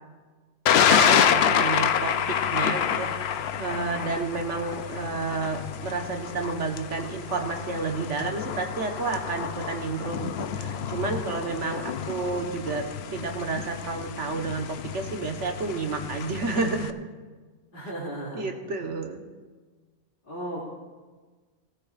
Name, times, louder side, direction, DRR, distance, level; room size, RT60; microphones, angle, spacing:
Thunder, 0.7-16.9, left 8 dB, 70° left, 0.8 m, -28 dB
voice 1, 0.9-12.8 13.1-16.9 18.3-19.2, right 3 dB, 85° right, 3 dB, 1.5 m, -30 dB
voice 2, 17.7-18.4 20.3-20.7, right 1 dB, 50° left, -9 dB, 2.6 m, -35 dB
19.0 x 14.0 x 2.5 m, 1.4 s
omnidirectional pair, 1.2 m